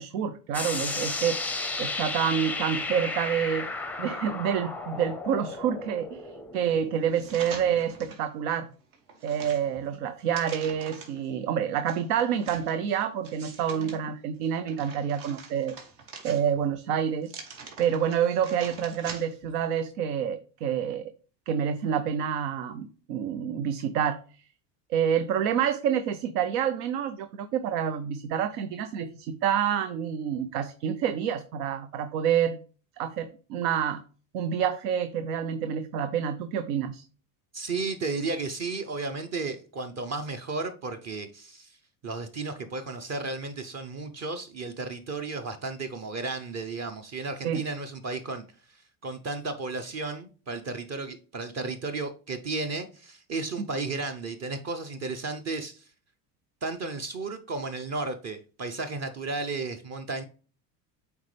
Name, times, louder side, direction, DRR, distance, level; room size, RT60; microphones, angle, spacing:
voice 1, 0.0-1.4 1.8-3.7 4.0-6.2 6.5-8.7 9.2-15.8 16.2-17.3 17.8-21.1 21.5-24.2 24.9-32.6 33.0-34.0 34.3-37.0 47.4-47.6, right 8 dB, 85° right, 0.7 m, -28 dB
sound 1, 0.5-8.1, left 3 dB, 5° left, 0.5 m, -34 dB
sound 2, 7.1-8.3 8.7-11.3 11.9-14.0 14.4-16.7 17.2-19.5 19.9-20.0, right 4 dB, 70° right, 2.1 m, -44 dB
voice 2, 37.5-41.7 42.0-48.4 49.0-55.8 56.6-60.2, right 3 dB, 35° right, 0.7 m, -33 dB
8.0 x 4.4 x 3.3 m
supercardioid pair, 105°, 46 cm